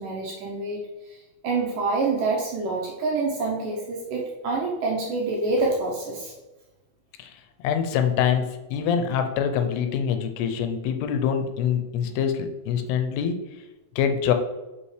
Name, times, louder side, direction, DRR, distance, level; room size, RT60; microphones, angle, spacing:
voice 1, 0.0-6.3, right 3 dB, 75° right, -2 dB, 2.0 m, -27 dB
voice 2, 7.2-13.4 14.0-14.3, left 8 dB, 85° left, 7 dB, 2.6 m, -25 dB
5.6 x 5.6 x 3.2 m, 1.1 s
omnidirectional pair, 4.7 m